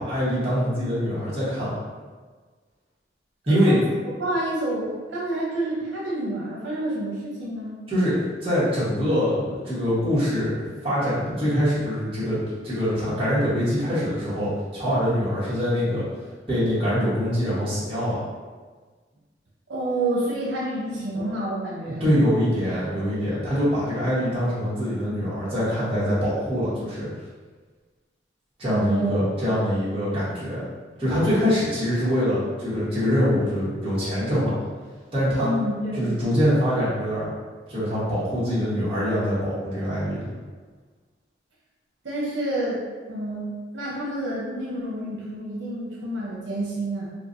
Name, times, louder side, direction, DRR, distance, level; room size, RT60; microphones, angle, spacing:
voice 1, 0.0-1.8 3.5-3.8 7.9-8.1 8.4-10.5 10.8-16.0 16.5-18.2 21.8-27.1 28.6-30.6 31.0-34.6 35.1-35.5 36.0-37.3 37.7-40.3, equal, 30° right, -11 dB, 1.3 m, -24 dB
voice 2, 4.2-7.8 19.7-22.2 28.7-29.5 35.4-36.4 42.0-42.8 43.1-47.1, right 1 dB, 85° right, -5 dB, 0.7 m, -28 dB
4.4 x 2.2 x 2.6 m, 1.4 s
head